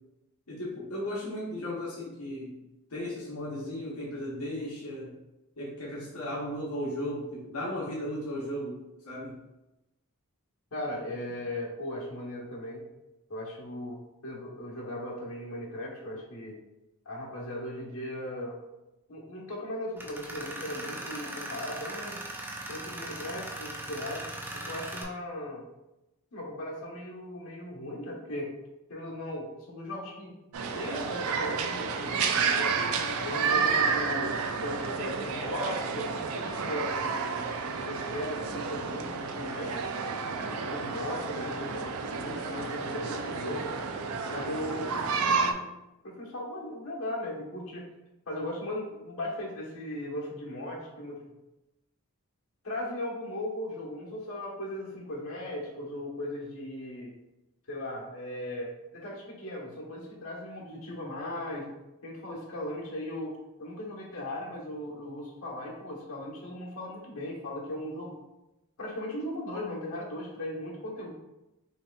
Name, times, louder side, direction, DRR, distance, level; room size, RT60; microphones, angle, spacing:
voice 1, 0.5-2.6 2.9-5.1 5.6-8.8 9.0-9.4, equal, 90° left, -6 dB, 0.9 m, -35 dB
voice 2, 10.7-12.8 13.3-16.6 17.0-18.6 19.1-22.2 22.7-24.2 24.6-25.6 26.3-28.5 28.9-30.3 30.7-32.9 33.2-34.3 34.6-37.4 37.7-39.8 40.5-43.7 44.3-45.7 46.0-47.8 48.3-51.2 52.6-57.1 57.7-61.7 62.0-68.2 68.8-71.1, left 1 dB, 70° left, -4 dB, 1.2 m, -37 dB
Tools, 20.0-25.0, right 1 dB, 10° right, 0.4 m, -39 dB
sound 1, 30.5-45.5, right 5 dB, 75° right, 0.4 m, -31 dB
5.5 x 2.9 x 2.3 m, 0.96 s
head